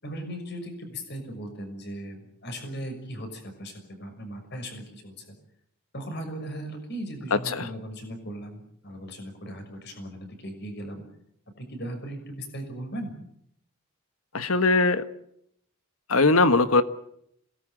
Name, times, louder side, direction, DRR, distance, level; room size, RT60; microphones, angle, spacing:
voice 1, 0.0-5.3 5.9-11.0 11.6-13.1, right 1 dB, 50° left, 6 dB, 6.2 m, -38 dB
voice 2, 7.3-7.7 14.3-15.0 16.1-16.8, left 3 dB, 85° left, 11 dB, 1.4 m, -20 dB
27.5 x 19.0 x 9.0 m, 0.74 s
head